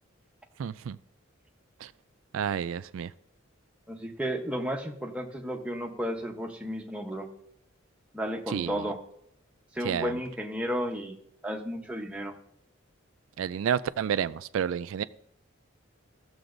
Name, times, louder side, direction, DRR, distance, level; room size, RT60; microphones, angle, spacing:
voice 1, 0.6-1.0 1.8-1.9 2.3-3.1 8.5-8.7 9.8-10.1 13.4-15.0, right 8 dB, 75° right, 15 dB, 0.3 m, -30 dB
voice 2, 3.9-7.3 8.1-9.0 9.7-12.3, equal, 5° right, 2 dB, 0.8 m, -33 dB
15.0 x 6.9 x 2.6 m, 0.72 s
head